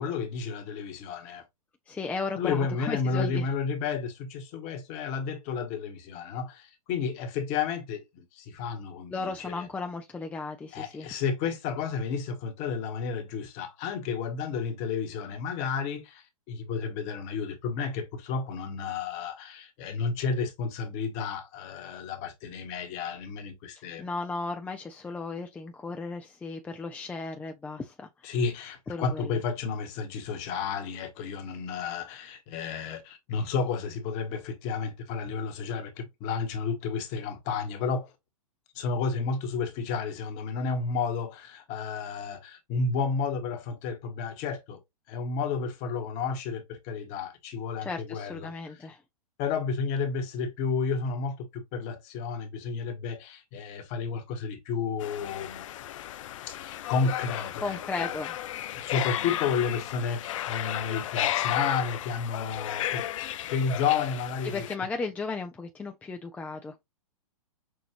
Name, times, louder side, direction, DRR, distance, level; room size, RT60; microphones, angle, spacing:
voice 1, 0.0-1.4 2.3-9.7 10.7-24.1 28.2-38.1 38.7-44.8 45.1-48.5 49.4-55.7 56.5-58.2 58.7-64.7, left 5 dB, 40° left, 1.4 m, -32 dB
voice 2, 1.9-3.5 9.1-11.1 24.0-28.1 28.9-29.4 47.8-49.0 57.6-58.4 64.4-66.8, left 4 dB, 10° left, 0.5 m, -35 dB
sound 1, 55.0-64.8, left 12 dB, 60° left, 0.5 m, -34 dB
6.1 x 2.6 x 3.0 m
hypercardioid pair, 125°, 19 cm